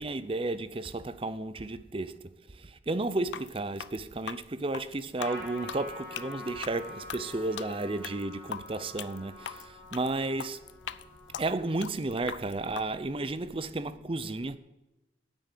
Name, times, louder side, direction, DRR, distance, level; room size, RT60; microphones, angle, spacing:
voice 1, 0.0-2.2 2.6-10.6 11.4-14.6, right 2 dB, 30° right, 0.5 m, -33 dB
sound 1, 3.2-12.9, left 8 dB, 75° left, 0.4 m, -41 dB
Trumpet, 5.2-11.9, left 2 dB, 15° left, 4.1 m, -46 dB
9.2 x 8.5 x 7.4 m
head